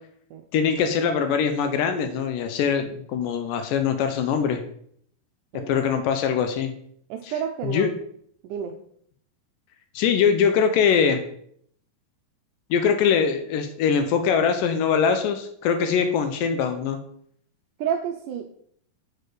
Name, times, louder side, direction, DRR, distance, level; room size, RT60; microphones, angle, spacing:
voice 1, 0.5-4.6 5.7-6.7 7.2-7.3 7.6-7.9 10.0-11.2 12.7-17.0, left 7 dB, 80° left, 7 dB, 2.1 m, -22 dB
voice 2, 7.1-7.9 8.4-8.7 17.8-18.5, right 8 dB, 85° right, 4 dB, 1.8 m, -30 dB
6.4 x 4.3 x 4.9 m, 0.66 s
omnidirectional pair, 4.1 m